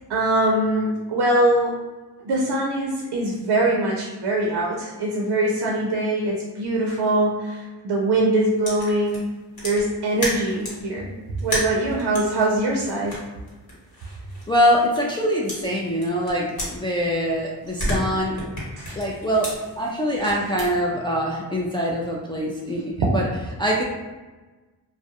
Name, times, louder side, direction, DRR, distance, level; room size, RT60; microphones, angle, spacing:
voice 1, 0.1-1.8 2.2-9.2 9.6-11.1 11.4-13.2 18.8-19.0 20.2-20.3 23.0-23.1, right 1 dB, 70° right, -2 dB, 0.5 m, -22 dB
sound 1, 8.6-10.9 11.4-15.2 15.5-17.3 17.6-20.7, equal, 55° left, 1.1 m, -32 dB
voice 2, 14.5-18.3 19.0-19.5 19.8-23.3 23.6-23.8, equal, 10° left, -3 dB, 0.3 m, -23 dB
2.3 x 2.0 x 2.8 m, 1.2 s
cardioid pair, 60°, 42 cm